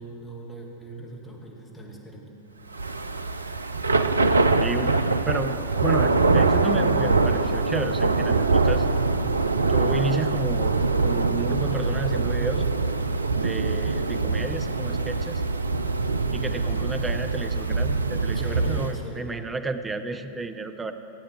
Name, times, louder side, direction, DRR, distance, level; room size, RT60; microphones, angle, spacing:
voice 1, 0.0-2.3 18.3-19.4, right 1 dB, 15° left, -2 dB, 2.3 m, -39 dB
Thunder / Rain, 2.7-19.0, right 3 dB, 80° right, 0.5 m, -23 dB
voice 2, 4.6-4.9 5.3-5.5 5.8-8.9 9.7-12.7 13.3-15.4 16.3-20.9, right 3 dB, 15° right, 8 dB, 0.7 m, -31 dB
16.0 x 8.7 x 7.4 m, 2.8 s
figure-of-eight pair, 90°, 0 cm